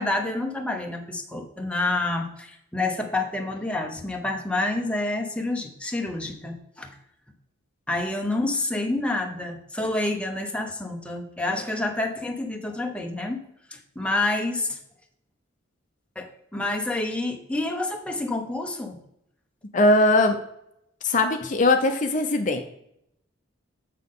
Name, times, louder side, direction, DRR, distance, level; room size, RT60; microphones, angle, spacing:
voice 1, 0.0-7.0 7.9-13.4 13.7-14.8 16.2-19.0, left 2 dB, 5° left, 2 dB, 0.8 m, -28 dB
voice 2, 19.7-20.4 21.0-22.6, left 2 dB, 40° left, 5 dB, 0.7 m, -20 dB
7.5 x 6.0 x 3.7 m, 0.76 s
head